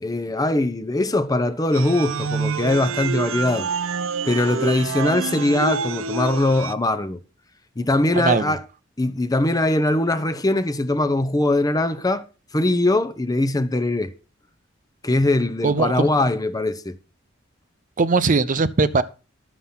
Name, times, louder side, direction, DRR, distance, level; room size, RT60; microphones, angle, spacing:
voice 1, 0.0-3.7 4.3-7.2 7.8-8.6 9.0-12.2 12.5-14.1 15.0-17.0, left 2 dB, 20° left, 0.7 m, -21 dB
sound 1, 1.7-6.7, right 5 dB, 85° right, 0.6 m, -27 dB
voice 2, 8.2-8.5 15.6-16.1 18.0-19.0, right 4 dB, 40° right, 0.6 m, -20 dB
11.5 x 7.0 x 5.6 m
head